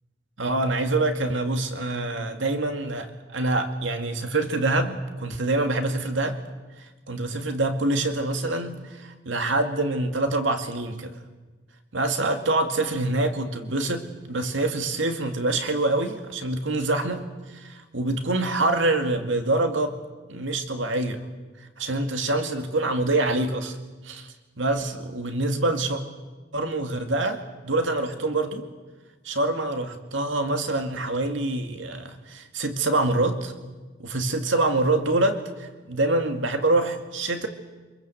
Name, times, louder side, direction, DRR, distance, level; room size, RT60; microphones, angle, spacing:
voice 1, 0.4-6.4 7.1-11.2 11.9-17.3 17.5-20.0 20.3-21.2 21.8-23.8 24.0-26.0 26.5-28.7 29.2-33.5 34.0-37.5, right 2 dB, 80° right, 6 dB, 2.2 m, -25 dB
25.0 x 22.0 x 7.8 m, 1.3 s
head